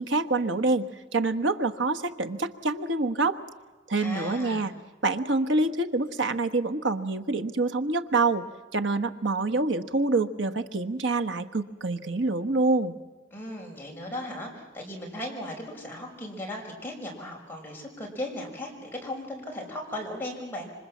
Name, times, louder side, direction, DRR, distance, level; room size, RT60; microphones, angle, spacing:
voice 1, 0.0-3.4 3.9-4.7 5.0-8.4 8.7-13.0, right 3 dB, 75° right, 8 dB, 1.3 m, -26 dB
voice 2, 4.0-4.7 13.3-20.7, left 1 dB, 10° left, -1 dB, 5.6 m, -37 dB
26.5 x 25.0 x 7.4 m, 1.3 s
head